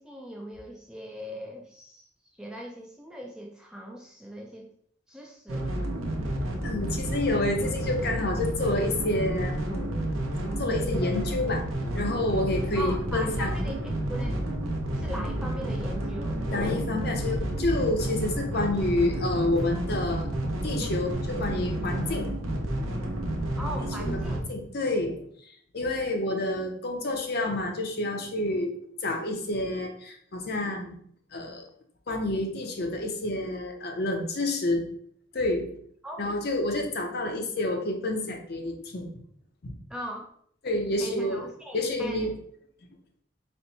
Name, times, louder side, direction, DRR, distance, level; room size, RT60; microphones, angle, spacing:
voice 1, 0.0-4.7 5.1-5.7 12.7-14.4 15.0-16.4 23.6-24.4 36.0-36.2 39.9-40.3 41.0-42.3, equal, 5° right, 0 dB, 0.3 m, -39 dB
sound 1, 5.5-24.4, right 1 dB, 90° right, 0.7 m, -30 dB
voice 2, 6.6-10.1 10.6-11.6 11.9-13.6 16.5-20.3 20.6-22.3 24.0-25.2 25.7-31.0 31.3-31.7 32.1-34.8 35.3-35.7 36.2-39.1 39.6-39.7 40.6-41.4 41.7-42.3, left 2 dB, 50° left, 3 dB, 0.6 m, -29 dB
4.3 x 2.2 x 4.0 m, 0.63 s
head